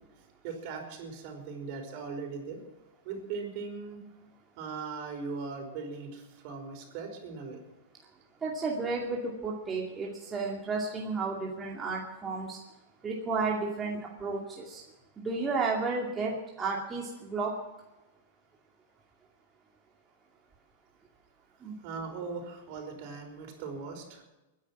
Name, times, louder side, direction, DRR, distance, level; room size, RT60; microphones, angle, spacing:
voice 1, 0.4-2.6 3.0-4.0 4.6-7.6 21.8-24.2, right 4 dB, 50° right, 4 dB, 5.1 m, -39 dB
voice 2, 8.4-12.6 13.0-14.8 15.2-17.5 21.6-21.7, right 4 dB, 20° right, -2 dB, 2.4 m, -32 dB
22.0 x 10.5 x 6.1 m, 1.0 s
hypercardioid pair, 135°, 0 cm